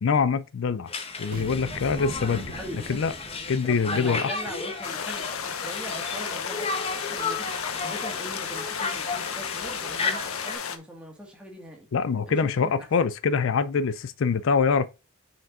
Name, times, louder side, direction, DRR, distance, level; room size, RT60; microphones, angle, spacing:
voice 1, 0.0-0.9 1.2-2.6 2.9-3.1 3.5-4.3 11.9-14.9, left 5 dB, 65° left, 0.4 m, -24 dB
Conversation, 0.9-10.6, left 4 dB, 25° left, 0.9 m, -34 dB
sound 1, 1.3-4.1, right 2 dB, 40° right, 0.7 m, -40 dB
voice 2, 2.6-3.2 3.6-11.9 12.3-12.9, equal, 5° right, 1.7 m, -41 dB
sound 2, 4.8-10.8, left 7 dB, 80° left, 0.8 m, -33 dB
6.2 x 4.8 x 3.7 m
head